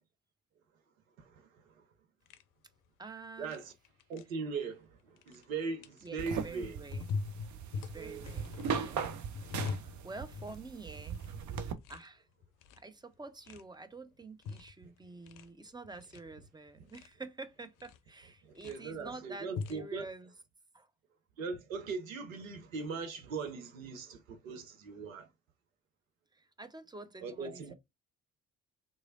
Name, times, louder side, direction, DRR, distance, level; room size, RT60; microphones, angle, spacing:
voice 1, 1.2-1.6 3.4-3.7 4.1-6.8 8.0-8.2 14.8-14.9 18.4-20.0 21.4-25.3 27.2-27.7, right 4 dB, 85° right, 0.8 m, -40 dB
sound 1, 2.3-2.4 3.4-3.6 3.8-4.2 5.2-5.4 5.8-6.1 6.9-10.6 10.9-11.3 11.6-12.1 12.4-12.9 13.5-13.6 14.2-14.7 15.0-15.5 15.8-16.2 16.7-17.1 17.8-18.0 18.4-18.8 19.4-19.8, left 5 dB, 55° left, 0.6 m, -41 dB
voice 2, 3.0-3.6 6.0-7.1 7.7-9.0 10.0-11.2 11.9-12.3 12.8-20.3 20.7-20.9 26.3-27.7, right 3 dB, 10° right, 0.6 m, -48 dB
sound 2, 6.2-11.7, right 7 dB, 45° right, 0.7 m, -39 dB
3.7 x 3.1 x 2.4 m
figure-of-eight pair, 45°, 39 cm